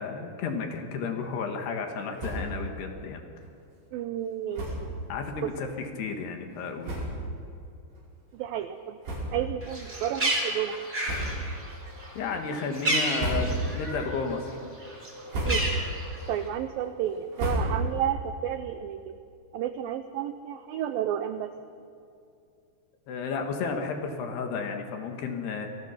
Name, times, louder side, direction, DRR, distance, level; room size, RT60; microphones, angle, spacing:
voice 1, 0.0-3.2 5.1-7.0 12.2-14.6 23.1-25.7, left 4 dB, 70° left, 4 dB, 3.6 m, -32 dB
sound 1, 2.1-2.6 3.0-3.1 3.4-3.5 4.5-5.0 5.7-5.8 6.5-6.6 6.8-7.4 7.9-8.0 9.0-9.7 10.0-10.2 11.0-11.6 12.1-12.5 13.0-13.9 14.2-14.7 15.1-15.9 16.3-18.1, right 1 dB, 65° right, 7.4 m, -32 dB
voice 2, 3.9-4.7 5.4-5.5 8.3-9.0 9.3-10.8 15.4-15.8 16.3-19.1 19.5-21.5, right 10 dB, 85° right, 9 dB, 2.0 m, -31 dB
Bird, 9.6-14.2 14.5-16.4, right 1 dB, 15° right, 3.4 m, -31 dB
27.5 x 19.5 x 5.8 m, 2.5 s
omnidirectional pair, 5.1 m